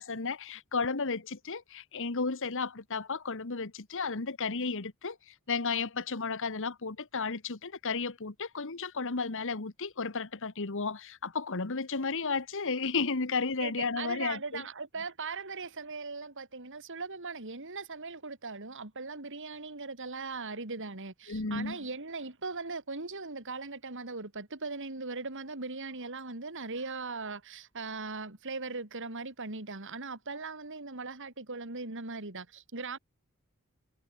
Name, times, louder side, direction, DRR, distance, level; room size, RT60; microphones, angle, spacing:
voice 1, 0.0-14.6 21.3-21.8, left 4 dB, 60° left, 1.4 m, -33 dB
voice 2, 13.6-33.0, right 3 dB, 60° right, 3.4 m, -39 dB
head